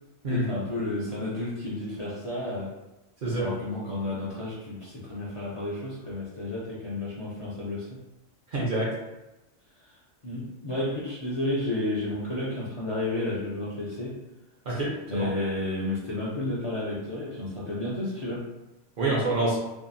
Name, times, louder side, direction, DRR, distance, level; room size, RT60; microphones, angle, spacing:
voice 1, 0.3-2.7 3.4-8.0 9.8-10.0 10.2-14.2 15.0-18.5, left 2 dB, 45° left, -7 dB, 0.4 m, -32 dB
voice 2, 8.5-8.9 14.7-15.3 19.0-19.6, right 1 dB, 55° right, -4 dB, 0.7 m, -26 dB
2.7 x 2.4 x 2.5 m, 1.0 s
omnidirectional pair, 1.2 m